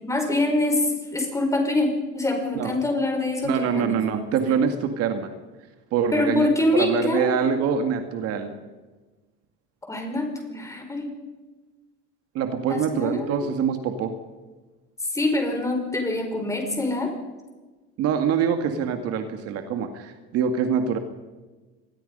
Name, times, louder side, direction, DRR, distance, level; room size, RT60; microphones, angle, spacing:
voice 1, 0.0-4.0 4.5-4.6 6.1-7.4 9.8-11.1 12.7-13.5 15.0-17.1, left 2 dB, 10° left, 3 dB, 5.1 m, -25 dB
voice 2, 3.4-5.3 5.9-8.5 12.3-14.1 18.0-21.0, right 7 dB, 55° right, 7 dB, 2.1 m, -25 dB
25.0 x 20.5 x 5.5 m, 1.2 s
cardioid pair, 140°, 29 cm